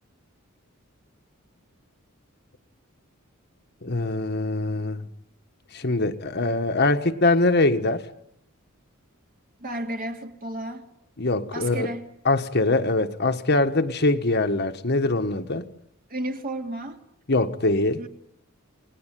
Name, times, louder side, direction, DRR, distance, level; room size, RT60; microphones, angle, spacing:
voice 1, 3.8-5.0 5.7-8.1 11.2-11.9 12.2-15.7 17.3-18.0, left 2 dB, 50° left, 1.5 m, -23 dB
voice 2, 9.6-10.8 11.5-12.1 16.1-17.0 18.0-18.1, right 1 dB, 40° right, 2.7 m, -32 dB
29.5 x 19.0 x 9.3 m
head